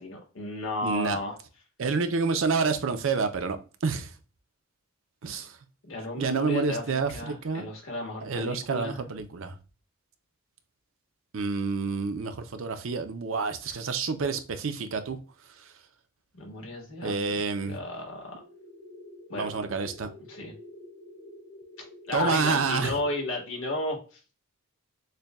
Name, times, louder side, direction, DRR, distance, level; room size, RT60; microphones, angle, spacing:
voice 1, 0.0-1.4 5.9-9.0 16.3-18.3 19.3-19.5 20.3-20.5 21.8-24.2, left 2 dB, 65° left, 1.4 m, -34 dB
voice 2, 0.8-1.2 1.8-4.1 5.2-5.6 6.2-7.7 8.2-9.5 11.3-15.2 15.6-15.7 17.0-17.8 19.4-20.1 22.1-22.9, right 4 dB, 60° right, 0.5 m, -28 dB
sound 1, 18.4-23.4, left 1 dB, 80° left, 0.9 m, -48 dB
6.6 x 2.2 x 2.3 m
head